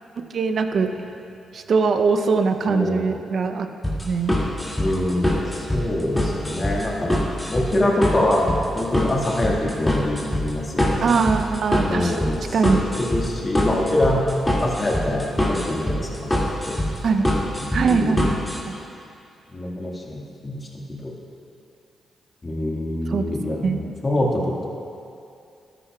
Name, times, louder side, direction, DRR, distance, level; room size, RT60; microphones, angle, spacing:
voice 1, 0.2-0.9 1.5-3.7 4.0-4.4 11.0-12.1 12.5-12.8 17.0-17.3 17.7-18.4 23.1-23.3 23.6-23.8, right 5 dB, 60° right, 8 dB, 0.6 m, -21 dB
voice 2, 2.7-3.0 4.8-7.1 7.5-11.1 11.8-14.2 14.6-16.3 16.7-16.8 17.6-18.4 19.5-21.1 22.4-24.7, left 1 dB, 35° left, -2 dB, 1.7 m, -25 dB
sound 1, 3.8-18.6, left 1 dB, 15° left, 2.3 m, -24 dB
13.0 x 9.9 x 2.3 m, 2.6 s
supercardioid pair, 50°, 0 cm